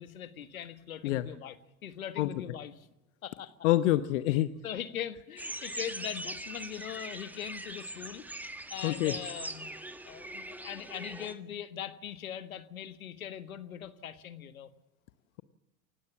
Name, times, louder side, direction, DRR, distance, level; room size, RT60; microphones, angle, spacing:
voice 1, 0.0-1.6 1.8-2.9 3.2-3.5 4.3-8.3 8.7-9.7 10.0-14.7, left 10 dB, 70° left, 12 dB, 1.6 m, -41 dB
voice 2, 3.6-4.5 8.8-9.1, left 15 dB, 55° left, 13 dB, 1.0 m, -26 dB
sound 1, 5.4-11.3, right 1 dB, 5° right, 1.5 m, -41 dB
28.5 x 16.5 x 7.3 m, 0.94 s
figure-of-eight pair, 80°, 43 cm